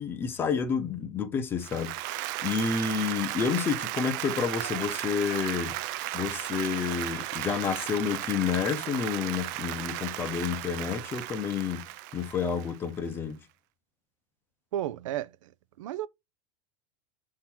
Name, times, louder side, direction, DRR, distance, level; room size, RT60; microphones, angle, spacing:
voice 1, 0.0-1.9 2.4-5.8 6.1-11.9 12.1-13.4, left 6 dB, 15° left, 0.6 m, -29 dB
Applause, 1.6-13.0, right 16 dB, 35° right, 0.4 m, -35 dB
voice 2, 14.7-15.3 15.8-16.1, right 12 dB, 85° right, 0.6 m, -32 dB
7.2 x 3.8 x 4.3 m
supercardioid pair, 180°, 16 cm